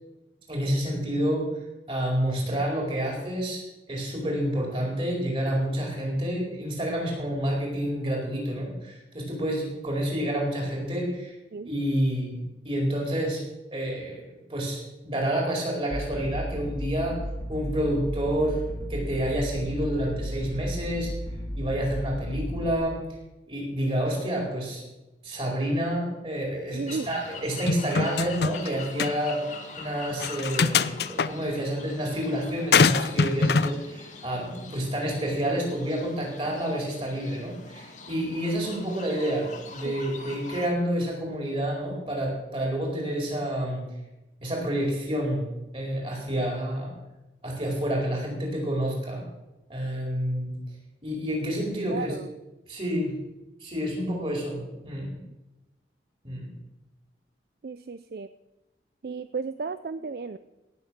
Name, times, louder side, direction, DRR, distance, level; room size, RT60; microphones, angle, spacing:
voice 1, 0.5-1.5 1.9-11.4 11.6-12.4 12.6-13.4 13.7-14.2 14.5-17.2 17.5-21.1 21.5-23.0 23.5-24.8 25.2-29.4 29.8-43.8 44.4-45.4 45.7-46.9 47.4-49.2 49.7-50.5 51.0-52.1 52.7-53.1 53.6-55.1 56.2-56.5, equal, 30° right, -1 dB, 4.7 m, -29 dB
sound 1, 15.9-22.7, equal, 20° left, 2.0 m, -34 dB
voice 2, 26.7-27.1 39.8-40.0 51.9-52.3 57.6-58.3 59.0-60.4, right 4 dB, 55° right, 13 dB, 0.4 m, -34 dB
sound 2, 26.9-40.7, left 4 dB, 40° left, 1.6 m, -44 dB
sound 3, 27.7-28.7 29.0-29.1 30.2-31.3 32.7-33.7, left 5 dB, 65° left, 0.5 m, -23 dB
17.5 x 7.4 x 6.6 m, 1.0 s
head